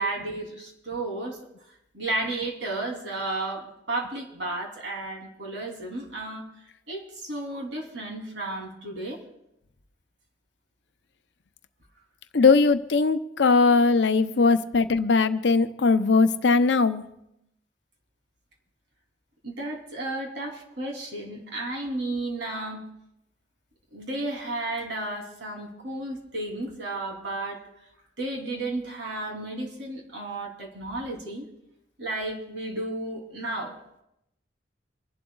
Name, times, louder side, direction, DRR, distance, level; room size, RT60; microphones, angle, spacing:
voice 1, 0.0-1.4 1.9-6.5 6.9-9.2 19.4-22.8 23.9-27.6 28.2-31.5 32.0-33.8, right 2 dB, 70° right, -1 dB, 3.1 m, -33 dB
voice 2, 12.3-17.0, left 4 dB, 65° left, 10 dB, 0.7 m, -20 dB
29.0 x 11.5 x 2.4 m, 0.82 s
head